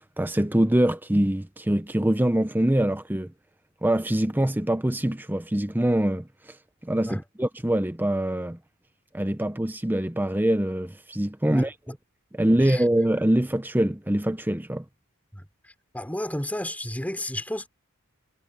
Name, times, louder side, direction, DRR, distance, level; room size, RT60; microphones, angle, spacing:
voice 1, 0.2-3.3 3.8-6.3 6.8-8.6 9.1-11.7 12.4-14.8, right 1 dB, 10° right, 0.7 m, -24 dB
voice 2, 12.5-12.8 15.3-17.7, left 1 dB, 5° left, 4.6 m, -33 dB
head